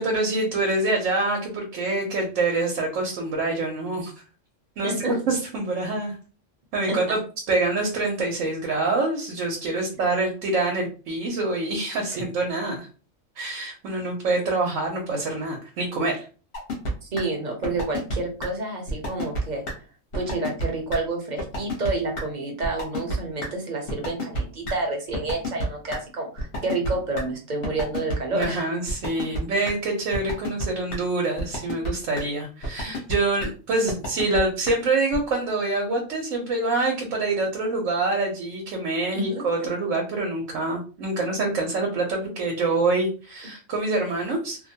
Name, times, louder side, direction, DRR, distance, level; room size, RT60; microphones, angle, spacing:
voice 1, 0.0-4.1 4.8-6.2 6.7-7.2 7.5-12.9 13.4-16.2 28.3-44.6, right 2 dB, 90° right, 0 dB, 1.0 m, -26 dB
voice 2, 4.8-5.2 6.9-7.2 9.7-9.8 14.5-14.6 17.0-19.6 20.1-28.7 39.1-39.4, right 2 dB, 45° right, 2 dB, 0.7 m, -29 dB
sound 1, 16.5-16.9 17.2-17.3 17.6-18.2 18.4-18.5 18.9-19.4 19.7-19.8 20.1-20.7 20.9-21.0 21.4-21.9 22.2-22.3 22.6-23.2 23.4-23.5 23.9-24.4 24.7-24.8 25.1-26.0 26.4-27.2 27.6-28.2 28.4-28.5 28.9-29.4 29.7-29.8 30.1-30.6 30.9-31.0 31.4-31.9 32.2-32.3 32.6-33.1 33.4-33.5 33.9-34.4 34.7-34.8 35.1-35.2, equal, 50° left, 1.0 m, -28 dB
2.5 x 2.2 x 2.7 m, 0.37 s
omnidirectional pair, 1.3 m